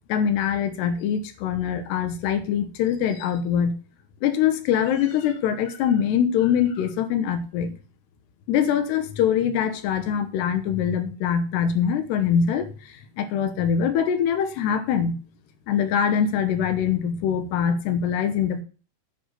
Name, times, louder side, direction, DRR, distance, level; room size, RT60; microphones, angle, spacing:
voice 1, 0.1-3.8 4.2-7.7 8.5-12.7 13.2-15.2 15.7-18.6, left 8 dB, 70° left, 9 dB, 2.8 m, -23 dB
10.5 x 6.1 x 6.5 m, 0.37 s
omnidirectional pair, 5.8 m